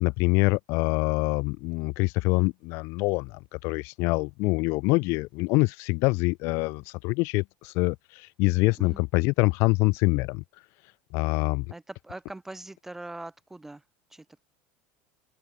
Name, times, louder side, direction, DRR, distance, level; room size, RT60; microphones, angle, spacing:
voice 1, 0.0-10.4 11.1-11.7, left 27 dB, 50° left, 0.6 m, -25 dB
voice 2, 11.7-13.8 14.1-14.4, right 2 dB, 5° right, 0.4 m, -42 dB
cardioid pair, 170°, 6 cm